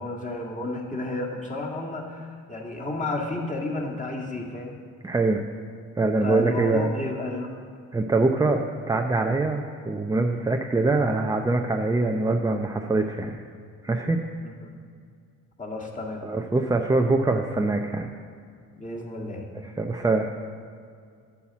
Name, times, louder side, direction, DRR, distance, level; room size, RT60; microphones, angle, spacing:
voice 1, 0.0-4.8 6.2-7.6 14.4-14.7 15.6-16.3 18.8-19.5, left 2 dB, 20° left, -2 dB, 2.0 m, -32 dB
voice 2, 5.0-5.4 6.0-6.9 7.9-13.4 13.8-14.2 16.2-18.1 19.6-20.3, right 3 dB, 10° right, 3 dB, 0.6 m, -24 dB
8.7 x 5.6 x 7.3 m, 2.2 s
hypercardioid pair, 50°, 41 cm